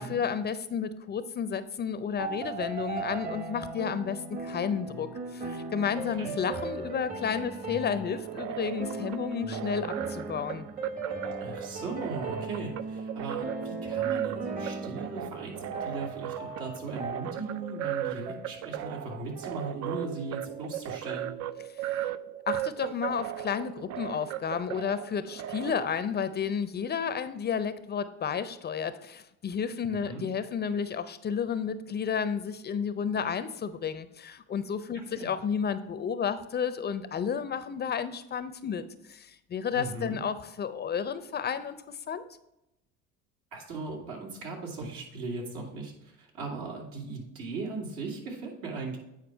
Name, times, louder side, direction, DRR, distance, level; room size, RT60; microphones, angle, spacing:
voice 1, 0.0-10.7 22.0-22.1 22.5-38.8 39.1-42.2, left 7 dB, 30° left, 12 dB, 0.5 m, -32 dB
sound 1, 2.2-21.4, right 3 dB, 25° right, 0.9 m, -39 dB
sound 2, 8.1-25.9, right 12 dB, 55° right, 0.4 m, -37 dB
voice 2, 11.4-21.3 30.1-30.2 35.1-35.3 39.7-40.2 43.5-49.0, right 3 dB, 75° right, 0 dB, 2.3 m, -38 dB
8.8 x 4.7 x 4.6 m, 0.88 s
supercardioid pair, 95°, 33 cm